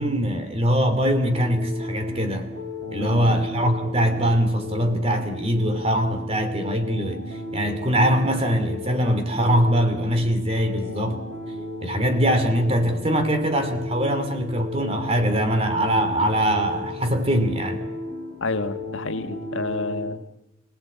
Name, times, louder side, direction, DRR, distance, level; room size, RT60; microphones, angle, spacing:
voice 1, 0.0-2.5 2.9-7.2 7.5-11.2 11.8-17.8, equal, 30° right, 2.8 m, -22 dB
sound 1, 1.0-20.1, left 1 dB, 60° right, 7.2 m, -35 dB
voice 2, 3.0-3.4 18.4-20.2, left 2 dB, 90° left, 1.6 m, -29 dB
27.0 x 17.5 x 8.6 m
head